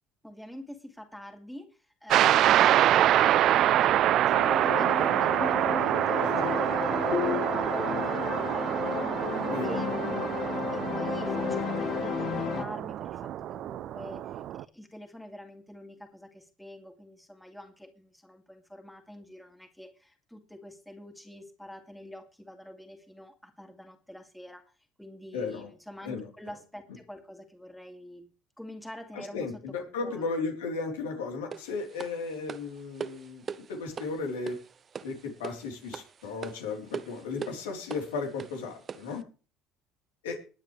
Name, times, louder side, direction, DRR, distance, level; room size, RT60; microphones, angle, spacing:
voice 1, 0.2-24.6 25.0-28.3 28.6-30.4, equal, 5° left, 5 dB, 2.4 m, -46 dB
sound 1, 2.1-14.6, right 12 dB, 60° right, 0.6 m, -26 dB
sound 2, 4.3-12.6, left 8 dB, 55° left, 1.2 m, -33 dB
voice 2, 6.2-6.5 9.5-10.2 25.3-25.7 26.0-26.3 29.1-33.4 33.7-34.6 35.0-39.2 40.2-40.4, left 4 dB, 85° left, 2 dB, 3.7 m, -35 dB
sound 3, 31.5-39.2, right 6 dB, 40° right, 0.9 m, -42 dB
20.5 x 9.0 x 3.3 m, 0.36 s
hypercardioid pair, 70°, 0 cm